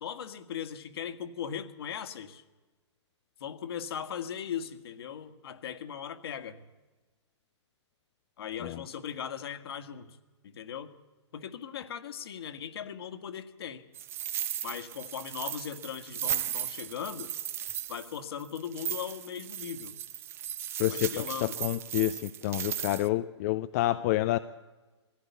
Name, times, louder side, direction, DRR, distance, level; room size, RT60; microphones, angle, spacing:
voice 1, 0.0-2.4 3.4-6.6 8.4-10.2 10.4-10.9 11.3-13.8 14.6-17.3 17.9-19.9 20.9-21.6, left 8 dB, 55° left, 8 dB, 1.8 m, -38 dB
sound 1, 13.9-23.1, right 10 dB, 15° right, 0.7 m, -36 dB
voice 2, 20.8-24.4, left 16 dB, 30° left, 10 dB, 0.6 m, -28 dB
21.5 x 16.0 x 8.3 m, 1.2 s
hypercardioid pair, 135°, 15 cm